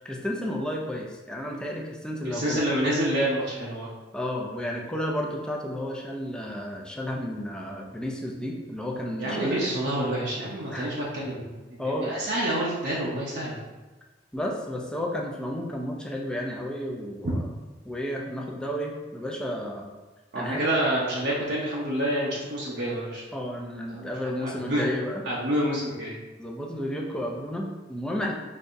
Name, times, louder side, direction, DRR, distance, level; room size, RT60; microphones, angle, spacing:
voice 1, 0.0-2.6 4.1-9.6 10.7-10.9 11.8-12.2 14.3-17.5 17.8-19.9 20.3-20.6 23.3-25.2 26.4-28.3, equal, 5° left, -1 dB, 0.6 m, -32 dB
voice 2, 2.2-3.9 9.2-13.6 17.2-17.3 20.3-23.2 23.9-24.1 24.4-24.9 25.3-26.1, right 1 dB, 65° right, -6 dB, 0.9 m, -28 dB
5.3 x 3.4 x 2.6 m, 1.2 s
head